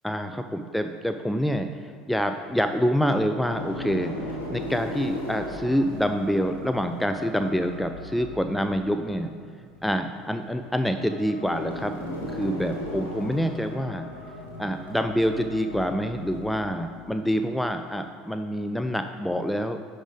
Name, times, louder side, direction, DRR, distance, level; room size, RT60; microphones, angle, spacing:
voice 1, 0.0-9.3 9.8-14.1 14.6-19.8, equal, 5° left, 6 dB, 0.4 m, -27 dB
sound 1, 2.1-2.9 3.4-18.0, left 1 dB, 90° left, 1.4 m, -38 dB
10.0 x 3.7 x 5.0 m, 2.1 s
figure-of-eight pair, 65°, 0 cm